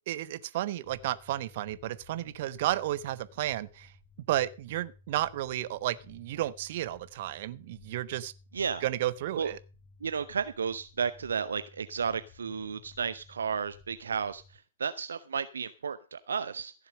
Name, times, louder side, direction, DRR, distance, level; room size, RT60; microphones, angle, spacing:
voice 1, 0.1-3.9 4.3-8.3 8.8-9.6, right 14 dB, 45° right, 1.0 m, -32 dB
sound 1, 0.8-14.6, left 5 dB, 30° left, 1.8 m, -56 dB
voice 2, 8.5-8.9 9.4-9.5 10.0-16.7, right 6 dB, 65° right, 0.7 m, -33 dB
15.5 x 7.2 x 6.5 m
figure-of-eight pair, 110°, 0 cm